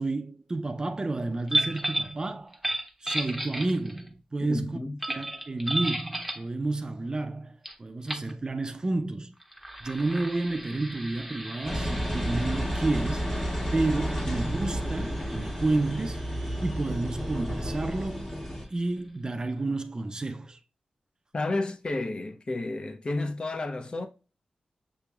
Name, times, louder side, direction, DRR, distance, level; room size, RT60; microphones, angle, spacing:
voice 1, 0.0-2.6 3.0-4.8 5.1-9.3 9.8-16.3 16.6-18.4 18.7-20.6, right 2 dB, 30° right, 0.4 m, -30 dB
sound 1, 1.5-2.2 2.5-4.1 5.0-6.5 7.6-7.7 8.0-8.3 9.4-18.7, right 1 dB, ahead, 0.8 m, -35 dB
voice 2, 4.5-5.0 21.3-24.1, left 2 dB, 40° left, 0.6 m, -31 dB
Engine, 11.6-18.6, equal, 25° left, 1.3 m, -31 dB
6.7 x 2.8 x 2.3 m
wide cardioid pair, 110°, 3 cm